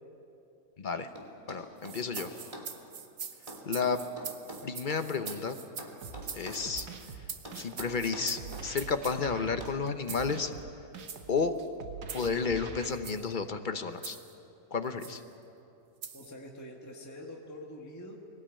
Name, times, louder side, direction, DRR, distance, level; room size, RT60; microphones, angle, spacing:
voice 1, 0.8-1.1 1.5-2.3 3.7-4.0 4.6-5.6 6.3-6.9 7.5-10.5 11.3-11.6 12.1-14.2 14.7-15.2, left 5 dB, 40° left, 8 dB, 0.8 m, -31 dB
sound 1, 1.2-2.7 3.5-5.5 5.8-6.7 7.4-8.7 9.6-9.8, right 1 dB, 20° right, 2.6 m, -45 dB
sound 2, 1.8-9.2 10.1-10.3 11.0-11.2 12.1-12.3 12.9-13.3 14.0-14.3 15.0-15.2 16.0-16.3, right 6 dB, 55° right, 1.4 m, -43 dB
sound 3, 6.0-12.9, right 5 dB, 75° right, 1.8 m, -45 dB
voice 2, 16.1-18.2, left 1 dB, 10° left, 0 dB, 1.5 m, -45 dB
21.5 x 18.5 x 8.8 m, 2.7 s
omnidirectional pair, 1.8 m